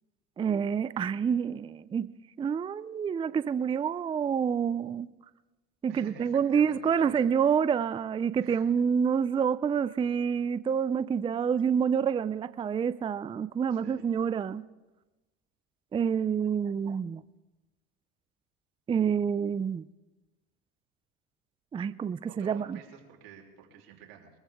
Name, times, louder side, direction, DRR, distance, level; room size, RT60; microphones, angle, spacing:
voice 1, 0.4-5.1 5.8-14.6 15.9-17.2 18.9-19.8 21.7-22.8, right 7 dB, 20° right, 15 dB, 0.4 m, -28 dB
voice 2, 5.9-7.3 8.4-8.7 13.7-14.1 22.2-24.3, right 8 dB, 85° right, 0 dB, 3.3 m, -50 dB
23.0 x 14.5 x 3.6 m, 1.1 s
supercardioid pair, 100°, 29 cm